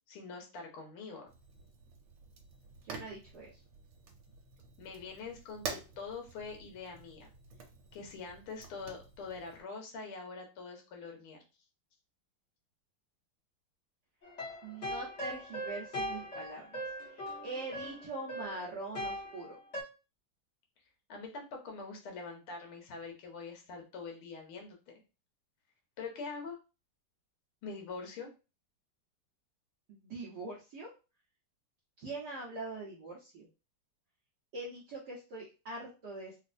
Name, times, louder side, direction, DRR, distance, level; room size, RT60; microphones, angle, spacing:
voice 1, 0.1-1.3 4.8-7.3 7.9-11.4 21.1-24.9 26.0-26.6 27.6-28.3, left 4 dB, 80° left, 2 dB, 1.7 m, -44 dB
Fire, 1.3-9.6, right 5 dB, 80° right, 1.6 m, -48 dB
voice 2, 2.8-3.6 14.6-16.8 17.1-19.6 29.9-30.9 32.0-33.5 34.5-36.4, right 2 dB, 60° right, -4 dB, 1.1 m, -43 dB
sound 1, 14.2-19.8, equal, 40° left, 1.3 m, -40 dB
4.0 x 2.4 x 2.5 m, 0.30 s
omnidirectional pair, 2.4 m